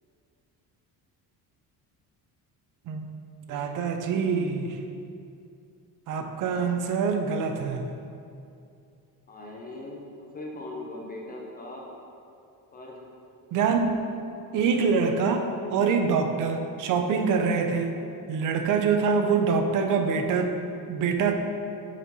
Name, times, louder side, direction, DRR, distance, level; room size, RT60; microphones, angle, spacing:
voice 1, 3.5-4.8 6.1-7.9 13.5-13.8 14.5-18.0 18.3-20.6 20.9-21.3, right 5 dB, 55° right, 5 dB, 0.6 m, -25 dB
voice 2, 9.3-11.9 12.7-13.0 14.0-14.1 17.5-17.6, left 2 dB, 25° left, -2 dB, 0.5 m, -40 dB
5.9 x 4.4 x 4.0 m, 2.6 s
cardioid pair, 170°, 37 cm